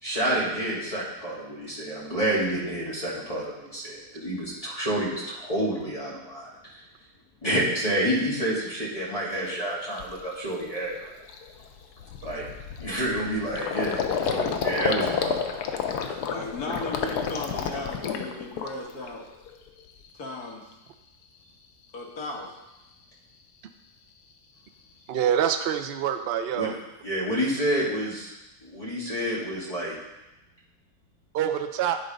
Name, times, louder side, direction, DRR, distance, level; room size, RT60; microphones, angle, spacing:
voice 1, 0.0-6.8 7.4-11.1 12.2-12.5 12.8-15.4 26.5-26.7 27.0-28.3 28.6-30.0, right 1 dB, 20° left, -8 dB, 2.1 m, -29 dB
Gurgling, 9.4-9.5 10.0-10.2 10.6-10.8 11.0-19.1 19.4-20.1, left 6 dB, 90° left, 1.2 m, -30 dB
voice 2, 16.2-19.3 20.1-20.6 21.9-22.5, left 2 dB, 70° left, 0 dB, 1.7 m, -36 dB
voice 3, 25.1-26.7 31.3-32.0, right 9 dB, 85° right, 7 dB, 0.5 m, -25 dB
9.9 x 3.9 x 5.1 m, 0.97 s
omnidirectional pair, 1.7 m